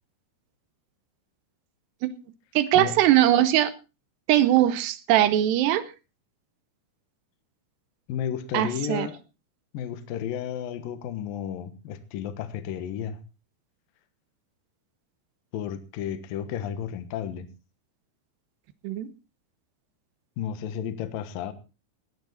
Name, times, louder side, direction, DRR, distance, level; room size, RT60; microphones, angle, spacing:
voice 1, 2.6-3.7 4.3-5.9 8.5-9.1 18.8-19.1, right 13 dB, 75° right, 14 dB, 2.7 m, -21 dB
voice 2, 8.1-9.2 9.7-13.2 15.5-17.5 20.4-21.5, left 9 dB, 65° left, 11 dB, 2.4 m, -32 dB
19.0 x 10.5 x 4.2 m, 0.31 s
omnidirectional pair, 5.5 m